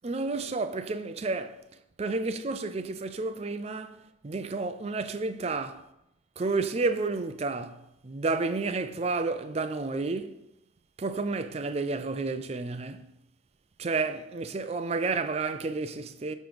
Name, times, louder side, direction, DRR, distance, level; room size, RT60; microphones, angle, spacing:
voice 1, 0.0-1.6 2.0-5.9 6.4-10.4 11.0-13.1 13.8-16.3, right 3 dB, 30° right, 0.4 m, -31 dB
9.1 x 3.1 x 5.1 m
head